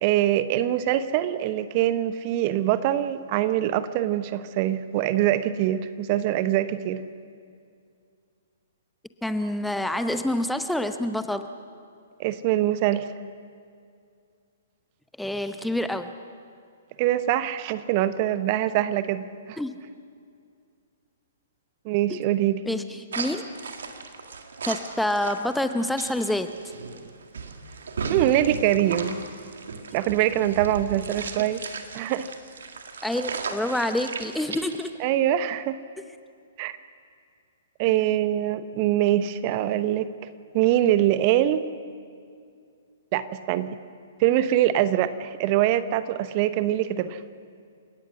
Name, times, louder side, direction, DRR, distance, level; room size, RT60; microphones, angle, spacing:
voice 1, 0.0-7.0 12.2-13.1 17.0-19.6 21.8-22.6 28.1-29.2 29.9-31.6 31.9-32.3 35.0-35.8 36.6-36.8 37.8-40.1 40.5-41.7 43.1-43.8 44.2-47.2, right 12 dB, 35° right, 13 dB, 0.9 m, -23 dB
voice 2, 9.2-11.5 15.2-16.1 19.6-19.8 22.1-22.2 22.7-23.4 24.7-26.5 31.3-31.4 33.0-34.9, left 1 dB, ahead, 9 dB, 0.8 m, -27 dB
sound 1, 23.1-34.9, right 5 dB, 65° right, 2.0 m, -36 dB
30.0 x 17.5 x 6.3 m, 2.3 s
figure-of-eight pair, 120°, 0 cm